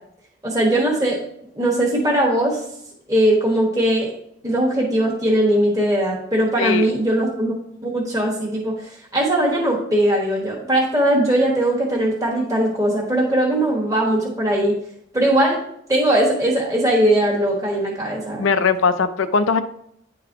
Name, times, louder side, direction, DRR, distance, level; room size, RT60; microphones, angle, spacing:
voice 1, 0.4-1.2 1.5-2.6 3.1-4.1 4.4-7.5 7.8-8.8 9.1-14.8 15.1-15.6 15.9-18.4, right 1 dB, 15° right, -3 dB, 1.3 m, -19 dB
voice 2, 18.4-19.6, left 5 dB, 90° left, 11 dB, 0.5 m, -19 dB
10.0 x 3.9 x 2.8 m, 0.73 s
head